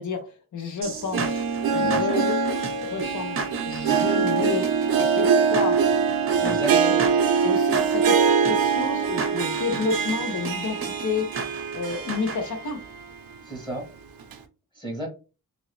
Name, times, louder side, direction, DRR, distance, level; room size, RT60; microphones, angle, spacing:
voice 1, 0.0-1.4 1.7-2.4 2.7-5.8 6.4-7.1 7.4-11.3 11.7-12.8, left 4 dB, 55° left, 6 dB, 0.8 m, -30 dB
sound 1, 0.8-12.4, right 4 dB, 40° right, 0.6 m, -34 dB
Harp, 0.9-13.0 13.4-13.5 14.3-14.4, right 6 dB, 80° right, 0.6 m, -23 dB
voice 2, 1.8-2.2 6.4-6.9 13.4-13.8 14.7-15.1, right 2 dB, 10° left, -1 dB, 1.1 m, -32 dB
2.9 x 2.6 x 3.1 m, 0.32 s
wide cardioid pair, 140°, 35 cm